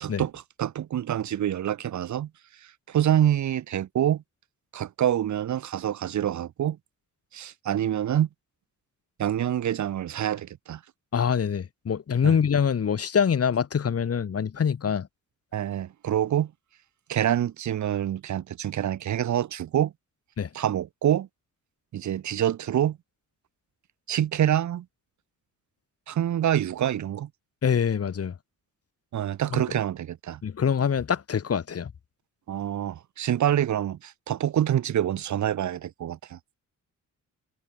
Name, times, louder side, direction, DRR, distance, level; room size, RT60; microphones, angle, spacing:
voice 1, 0.0-2.3 2.9-4.2 4.7-6.8 7.3-8.3 9.2-10.8 12.2-12.4 15.5-16.5 17.1-19.9 20.5-21.3 21.9-23.0 24.1-24.8 26.1-27.3 29.1-30.4 32.5-36.4, right 11 dB, 65° right, 1.0 m, -26 dB
voice 2, 11.1-15.1 20.4-20.5 27.6-28.3 29.5-29.6 30.4-31.9, left 7 dB, 50° left, 2.4 m, -25 dB
cardioid pair, 105°, 31 cm